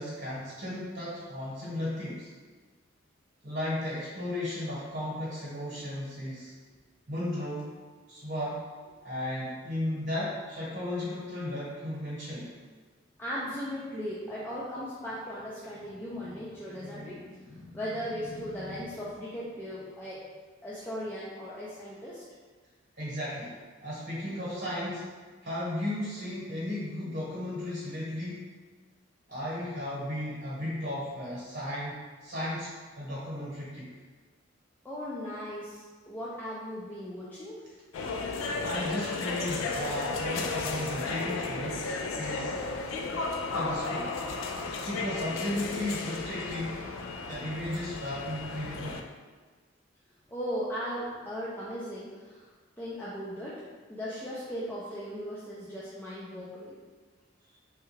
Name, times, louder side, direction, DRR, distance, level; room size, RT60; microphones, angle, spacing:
voice 1, 0.0-2.3 3.4-6.5 7.1-7.7 8.1-8.6 9.0-12.5 23.0-25.1 25.4-28.4 29.3-33.9 38.6-42.9 43.5-44.1 44.8-46.8 47.3-49.0, left 1 dB, 55° right, -8 dB, 1.0 m, -35 dB
voice 2, 13.2-20.2 20.6-22.2 34.8-37.6 50.3-52.5 52.8-53.6 53.9-56.7, equal, 10° left, -8 dB, 0.3 m, -37 dB
sound 1, 37.9-49.0, left 3 dB, 90° left, 0.3 m, -34 dB
3.4 x 2.2 x 3.1 m, 1.4 s
head